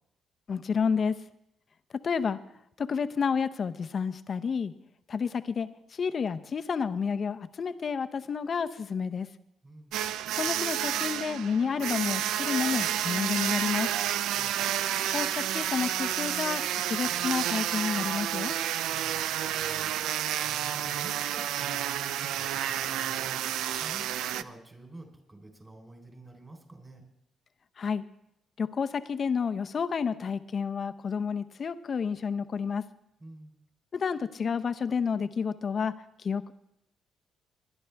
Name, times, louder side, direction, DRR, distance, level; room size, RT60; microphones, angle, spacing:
voice 1, 0.5-1.2 2.0-2.4 2.8-4.7 5.1-9.3 10.3-13.9 15.1-18.6 27.8-28.0 28.6-32.9 33.9-36.5, left 6 dB, 45° left, 11 dB, 0.7 m, -30 dB
voice 2, 9.6-10.0 14.4-14.6 18.9-27.1 33.2-33.5, right 2 dB, 20° right, 3 dB, 3.8 m, -50 dB
sound 1, 9.9-24.4, right 11 dB, 85° right, 0.4 m, -30 dB
20.5 x 11.0 x 3.5 m, 0.78 s
cardioid pair, 90°, 0 cm